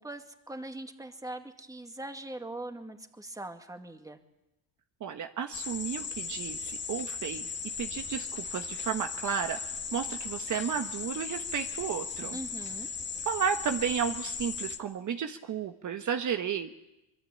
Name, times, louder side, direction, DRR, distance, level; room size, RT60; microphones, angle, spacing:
voice 1, 0.0-4.2 12.3-12.9, right 2 dB, 10° right, 6 dB, 2.2 m, -41 dB
voice 2, 5.0-7.5 7.8-9.6 9.9-12.4 13.2-16.9, right 7 dB, 45° right, 7 dB, 1.3 m, -33 dB
sound 1, 5.5-14.8, left 5 dB, 25° left, 1.8 m, -37 dB
25.0 x 22.0 x 8.5 m, 0.93 s
cardioid pair, 100°, 42 cm